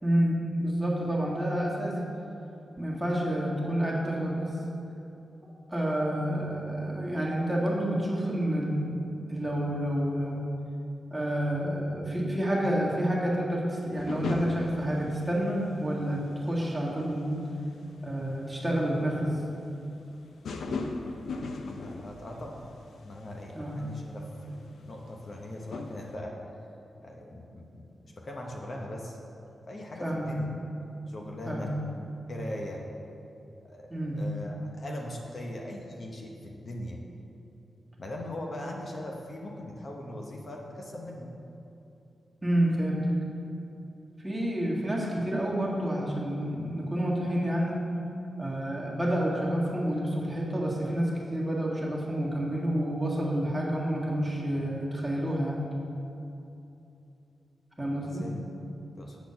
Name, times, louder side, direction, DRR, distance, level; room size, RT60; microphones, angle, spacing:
voice 1, 0.0-2.0 2.8-4.5 5.7-9.0 9.3-10.5 11.1-17.5 18.0-19.4 23.5-23.8 30.0-30.3 31.4-31.7 33.9-34.2 42.4-43.1 44.2-47.8 48.4-55.6 57.8-58.3, right 1 dB, 10° right, -5 dB, 1.7 m, -29 dB
sound 1, 14.0-16.5 17.3-17.5 17.8-17.9 18.1-18.2 18.6-18.7 18.9-19.0 20.4-23.0 23.2-23.4 23.7-25.4 25.7-26.1, left 3 dB, 85° left, 0.6 m, -37 dB
voice 2, 21.5-22.7 23.0-26.4 27.0-29.2 29.7-30.5 31.1-31.8 32.3-32.8 33.7-37.0 38.0-41.3 58.0-58.5 59.0-59.2, left 1 dB, 45° left, 0 dB, 0.8 m, -40 dB
8.1 x 4.3 x 6.9 m, 2.8 s
wide cardioid pair, 95°, 0 cm